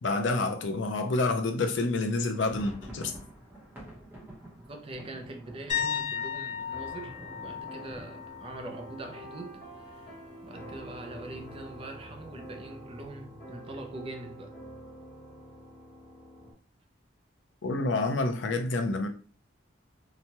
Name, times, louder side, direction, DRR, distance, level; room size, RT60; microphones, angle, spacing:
voice 1, 0.0-3.1 17.6-19.1, left 2 dB, 80° left, 0.5 m, -28 dB
sound 1, 2.2-9.9 10.2-10.3 10.6-10.8 11.3-11.8, equal, 10° right, 0.8 m, -49 dB
voice 2, 4.7-14.6, right 2 dB, 30° right, 0.5 m, -43 dB
sound 2, 5.7-9.4 9.8-10.1 13.0-13.1, left 8 dB, 40° left, 0.6 m, -36 dB
sound 3, 6.7-16.5, right 1 dB, 55° left, 1.0 m, -47 dB
2.9 x 2.2 x 2.8 m
head